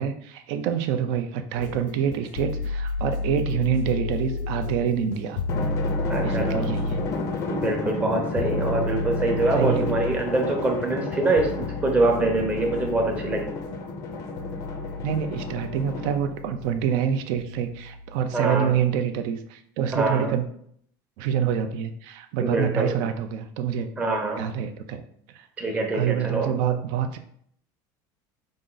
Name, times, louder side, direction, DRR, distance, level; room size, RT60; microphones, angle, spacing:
voice 1, 0.0-5.4 6.2-7.0 9.5-9.9 15.0-20.5 21.2-23.9 24.4-25.0 25.3-25.4 25.9-27.2, right 8 dB, 55° right, 7 dB, 0.5 m, -26 dB
sound 1, 1.5-18.8, left 2 dB, 80° left, 0.5 m, -32 dB
Drum, 5.5-16.5, left 3 dB, 35° left, 0.5 m, -32 dB
voice 2, 6.1-6.7 7.5-13.5 18.3-18.7 19.9-20.3 22.4-22.9 24.0-24.4 25.6-26.5, right 2 dB, 15° right, 1 dB, 0.7 m, -24 dB
5.1 x 2.5 x 3.8 m, 0.65 s
cardioid pair, 175°, 10 cm